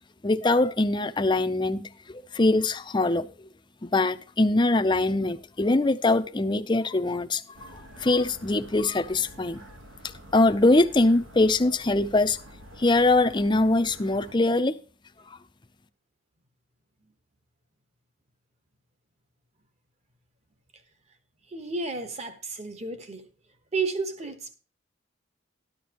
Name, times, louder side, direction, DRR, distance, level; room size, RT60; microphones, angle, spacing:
voice 1, 0.2-3.3 3.8-9.6 10.3-12.4 12.8-14.8, left 2 dB, 25° left, 0.6 m, -23 dB
sound 1, 7.5-14.3, right 1 dB, 75° right, 1.7 m, -48 dB
voice 2, 21.5-23.3 23.7-24.5, right 4 dB, 35° right, 1.3 m, -32 dB
13.0 x 11.0 x 3.0 m
head